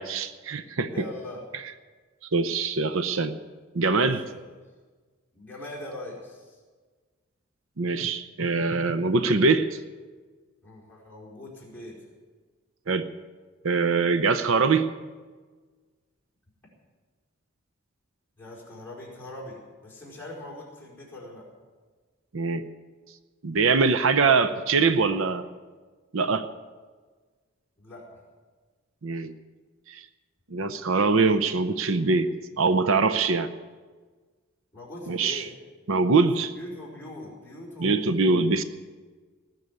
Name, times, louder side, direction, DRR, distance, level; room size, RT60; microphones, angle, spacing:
voice 1, 0.0-0.9 2.3-3.4 3.7-4.2 7.8-9.8 12.9-13.1 13.6-14.9 22.3-22.6 23.4-25.5 26.1-26.5 29.0-29.3 29.9-30.1 30.5-32.3 32.6-33.5 35.1-35.5 35.9-36.5 37.8-38.6, right 4 dB, 70° right, 11 dB, 0.7 m, -23 dB
voice 2, 0.9-1.4 3.9-4.4 5.3-6.6 10.6-12.0 18.4-21.5 27.8-28.2 34.7-35.5 36.4-38.2, left 1 dB, 10° left, -6 dB, 4.8 m, -42 dB
19.0 x 6.5 x 9.6 m, 1.4 s
head